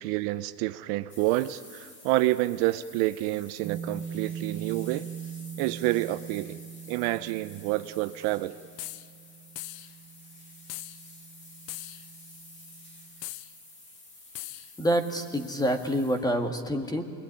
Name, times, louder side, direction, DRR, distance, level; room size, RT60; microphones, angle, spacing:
voice 1, 0.0-5.1 5.6-6.6 6.9-8.6, right 18 dB, 60° right, 12 dB, 0.9 m, -28 dB
sound 1, 1.1-16.4, left 2 dB, 25° left, 3.5 m, -51 dB
sound 2, 3.6-13.1, right 8 dB, 35° right, 2.3 m, -42 dB
sound 3, 8.8-9.1 9.6-9.9 10.7-11.0 11.7-12.1 13.2-13.5 14.3-14.7, left 16 dB, 60° left, 0.8 m, -39 dB
voice 2, 14.8-17.0, equal, 10° left, 7 dB, 1.9 m, -27 dB
27.5 x 21.5 x 9.9 m, 2.5 s
supercardioid pair, 145°, 48 cm